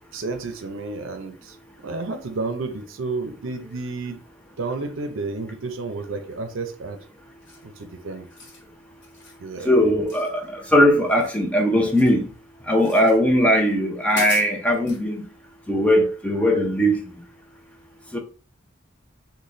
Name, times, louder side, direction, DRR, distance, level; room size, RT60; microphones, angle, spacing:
voice 1, 0.1-1.6 1.8-4.2 4.6-7.0 7.6-8.3 9.4-9.7, right 3 dB, 70° right, 0.5 m, -31 dB
sound 1, 7.4-7.8 8.2-8.6 9.0-9.4 10.1-10.7 11.0-12.2 12.8-13.2 13.7-13.8 14.1-15.0, left 3 dB, 60° left, 1.1 m, -39 dB
voice 2, 9.7-12.2 12.7-15.2 15.7-17.0 18.1-18.2, equal, 5° left, 0.5 m, -19 dB
3.9 x 2.2 x 3.2 m
head